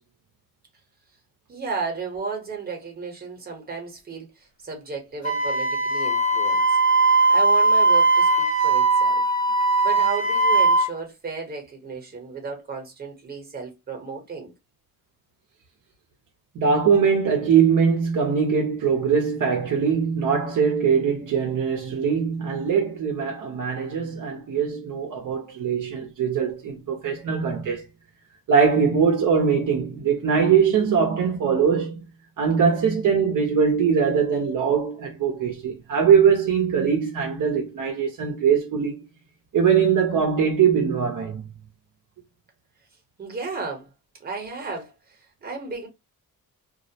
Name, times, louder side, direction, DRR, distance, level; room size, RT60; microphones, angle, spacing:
voice 1, 1.5-6.8 7.1-9.2 9.8-14.5 43.2-43.9 44.2-45.9, right 4 dB, 25° right, 0.9 m, -34 dB
Wind instrument woodwind instrument, 5.2-10.9, right 2 dB, 25° left, 0.8 m, -19 dB
voice 2, 16.5-27.9 28.5-32.0 32.4-39.0 39.5-41.5, right 6 dB, 60° right, 0.6 m, -21 dB
2.3 x 2.0 x 2.7 m
wide cardioid pair, 130°, 36 cm